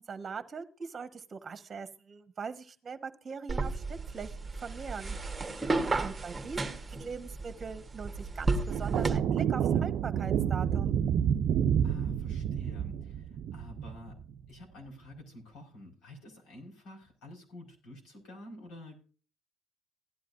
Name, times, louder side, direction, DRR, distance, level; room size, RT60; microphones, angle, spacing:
voice 1, 0.0-5.2 6.0-6.7 7.0-11.0, right 5 dB, 30° right, 9 dB, 1.3 m, -41 dB
sound 1, 3.5-9.2, right 3 dB, 15° right, 1.4 m, -33 dB
voice 2, 5.7-6.0 11.8-14.2 14.5-19.0, left 1 dB, 80° left, -1 dB, 4.9 m, -49 dB
sound 2, 8.7-14.3, right 8 dB, 65° right, 0.5 m, -29 dB
16.0 x 11.0 x 2.6 m, 0.38 s
cardioid pair, 105°, 0 cm